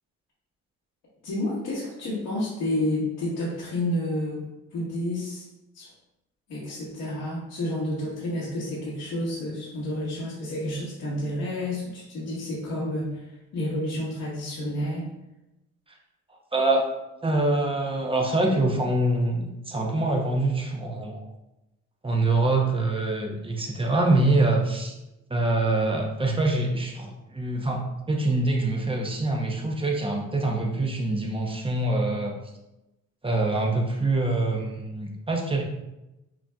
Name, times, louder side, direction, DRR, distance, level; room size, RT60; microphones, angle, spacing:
voice 1, 1.2-4.5 4.7-5.5 5.7-5.9 6.5-13.2 13.5-15.1, left 1 dB, 80° left, -10 dB, 1.4 m, -30 dB
voice 2, 16.5-16.9 17.2-21.2 22.0-25.0 25.3-32.4 33.2-35.6, right 2 dB, 20° right, 0 dB, 0.8 m, -25 dB
5.9 x 2.6 x 2.3 m, 0.93 s
cardioid pair, 90°, 30 cm